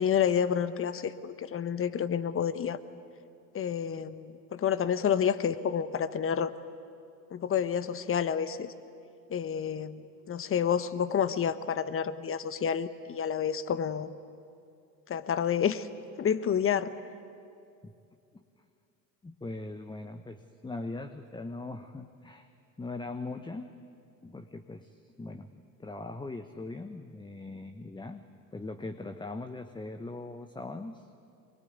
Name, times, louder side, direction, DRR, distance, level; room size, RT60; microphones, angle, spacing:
voice 1, 0.0-2.8 3.5-6.5 7.3-8.7 9.3-10.0 10.3-14.1 15.1-15.9 16.2-16.9, left 8 dB, 30° left, 13 dB, 1.2 m, -29 dB
voice 2, 19.2-22.5 22.8-23.7 24.2-28.2 28.5-31.1, left 2 dB, 10° left, 8 dB, 1.1 m, -40 dB
23.5 x 22.0 x 9.5 m, 2.5 s
hypercardioid pair, 80°, 46 cm